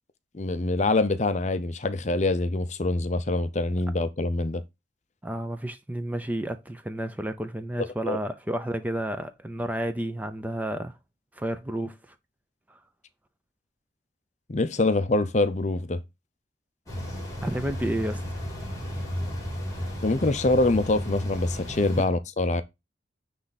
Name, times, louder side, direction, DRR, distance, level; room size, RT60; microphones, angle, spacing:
voice 1, 0.3-4.6 7.8-8.2 14.5-16.0 20.0-22.6, left 2 dB, 35° left, 0.6 m, -25 dB
voice 2, 5.2-10.9 11.3-12.0 12.7-12.8 17.4-18.2, right 1 dB, 10° right, 0.5 m, -31 dB
sound 1, 16.9-22.0, equal, 20° left, 3.6 m, -33 dB
9.8 x 3.3 x 4.0 m
head